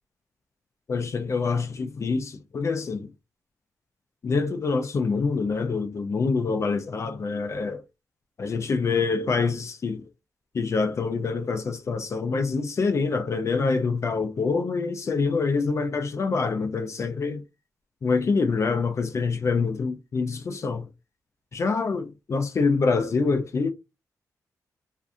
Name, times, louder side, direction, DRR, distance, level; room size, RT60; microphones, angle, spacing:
voice 1, 0.9-3.1 4.2-7.8 8.4-10.0 10.5-17.4 18.0-20.9 21.5-23.7, left 4 dB, 45° left, 0.4 m, -26 dB
2.5 x 2.3 x 2.5 m
cardioid pair, 65°, 7 cm